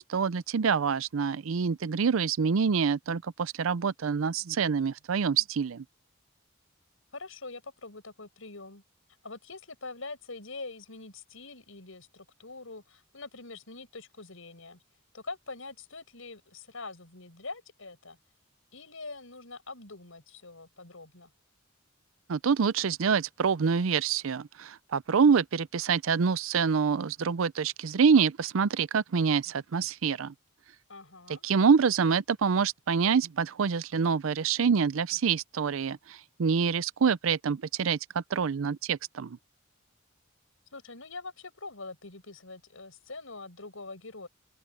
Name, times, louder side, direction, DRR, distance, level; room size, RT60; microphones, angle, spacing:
voice 1, 0.0-5.8 22.3-30.3 31.4-39.4, right 6 dB, 75° right, 0.5 m, -26 dB
voice 2, 7.1-8.8 9.2-14.8 15.1-18.2 18.7-21.3 30.9-31.4 40.7-44.3, left 3 dB, 75° left, 5.9 m, -44 dB
open air
head